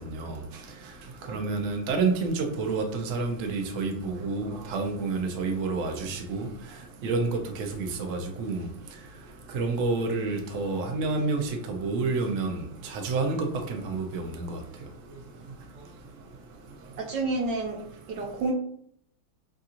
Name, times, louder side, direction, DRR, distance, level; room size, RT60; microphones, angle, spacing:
voice 1, 1.3-6.5 7.0-8.6 9.5-12.6 12.9-14.6, right 3 dB, 85° right, 4 dB, 0.6 m, -29 dB
voice 2, 17.0-17.8 18.1-18.5, right 3 dB, 70° right, 0 dB, 1.1 m, -29 dB
6.4 x 2.8 x 2.5 m, 0.67 s
omnidirectional pair, 2.2 m